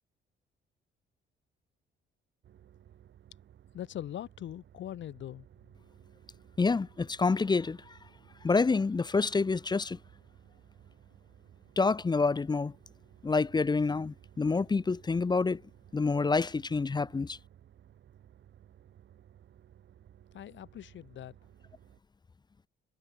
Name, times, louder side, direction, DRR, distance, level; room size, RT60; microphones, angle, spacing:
sound 1, 2.4-22.0, right 10 dB, 65° right, 3.5 m, -58 dB
voice 1, 3.7-5.5 20.3-21.4, left 11 dB, 70° left, 1.8 m, -41 dB
voice 2, 6.6-8.0 8.4-10.0 11.8-12.7 13.2-15.6 15.9-17.4, left 4 dB, 20° left, 0.6 m, -27 dB
cardioid pair, 90°, 20 cm